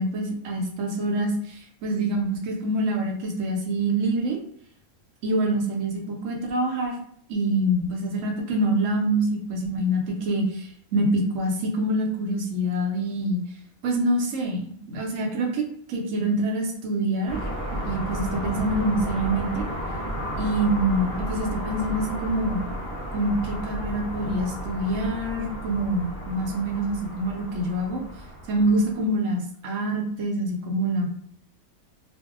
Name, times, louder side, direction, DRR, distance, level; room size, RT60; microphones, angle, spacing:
voice 1, 0.0-4.4 5.2-7.0 7.3-13.4 13.8-15.6 15.9-17.4 17.8-19.7 20.4-22.7 23.1-28.0 28.5-31.1, right 1 dB, 70° right, 1 dB, 0.9 m, -25 dB
sound 1, 17.3-29.1, equal, 15° right, 0.8 m, -33 dB
2.5 x 2.0 x 2.4 m, 0.63 s
omnidirectional pair, 1.5 m